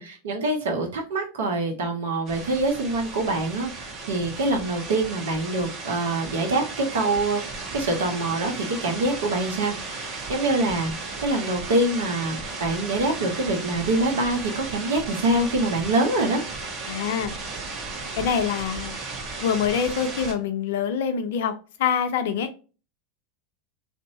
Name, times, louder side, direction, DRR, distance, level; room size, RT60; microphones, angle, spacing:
voice 1, 0.0-7.4 7.7-10.9 11.2-16.4, right 2 dB, 70° right, 0.8 m, -25 dB
sound 1, 2.3-20.3, right 3 dB, 40° right, 1.0 m, -35 dB
voice 2, 16.8-17.3 18.2-19.0 19.4-21.5 21.8-22.5, left 7 dB, 65° left, 0.4 m, -25 dB
2.6 x 2.2 x 2.7 m
hypercardioid pair, 90°, 0 cm